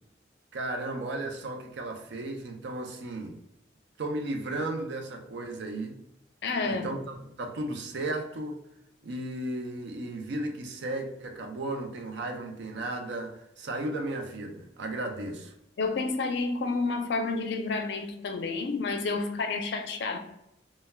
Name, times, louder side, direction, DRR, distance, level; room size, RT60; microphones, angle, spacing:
voice 1, 0.5-3.4 4.0-6.0 6.6-8.6 9.0-15.5, right 2 dB, 70° right, 0.5 m, -35 dB
voice 2, 6.4-6.9 15.8-20.2, left 3 dB, 65° left, 0.4 m, -30 dB
2.2 x 2.1 x 3.2 m
head